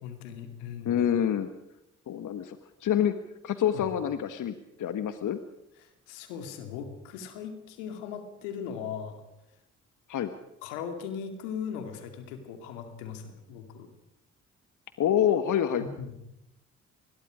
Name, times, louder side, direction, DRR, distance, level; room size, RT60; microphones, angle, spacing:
voice 1, 0.0-0.9 3.7-3.9 5.8-9.2 10.6-13.9 15.8-16.2, left 7 dB, 85° left, 7 dB, 2.5 m, -39 dB
voice 2, 0.8-1.5 2.1-2.6 2.8-3.1 3.4-5.4 10.1-10.3 15.0-15.8, left 9 dB, 60° left, 10 dB, 1.4 m, -26 dB
26.5 x 21.5 x 5.1 m, 0.87 s
hypercardioid pair, 45°, 36 cm